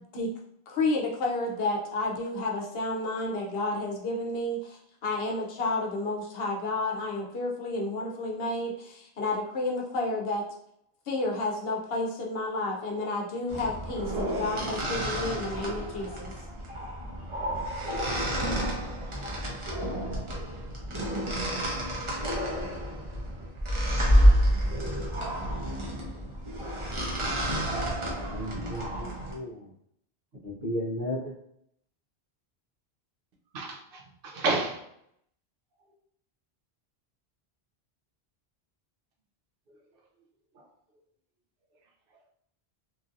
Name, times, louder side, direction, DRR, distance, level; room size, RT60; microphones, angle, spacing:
voice 1, 0.7-10.4 11.1-16.3, left 2 dB, 75° left, 0 dB, 0.8 m, -31 dB
sound 1, 13.5-29.3, equal, 35° right, 0.6 m, -29 dB
voice 2, 27.5-27.8 28.3-29.6 30.4-31.3, equal, 85° right, -5 dB, 1.3 m, -34 dB
voice 3, 33.5-34.9 39.7-39.8 40.5-40.7, right 3 dB, 65° right, -1 dB, 0.8 m, -31 dB
3.1 x 2.6 x 2.4 m, 0.73 s
omnidirectional pair, 1.0 m